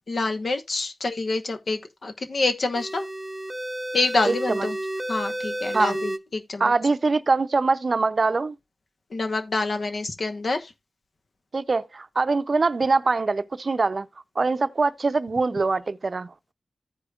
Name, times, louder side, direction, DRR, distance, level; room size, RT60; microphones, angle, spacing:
voice 1, 0.1-3.1 3.9-4.8 5.1-6.7 9.1-10.7, left 3 dB, 75° left, 1.1 m, -27 dB
sound 1, 2.7-6.2, right 1 dB, 15° right, 0.6 m, -31 dB
voice 2, 4.3-4.7 5.7-6.0 6.6-8.5 11.5-14.1 14.4-16.3, right 3 dB, 60° right, 0.5 m, -23 dB
15.0 x 5.0 x 2.4 m
wide cardioid pair, 60°, 0 cm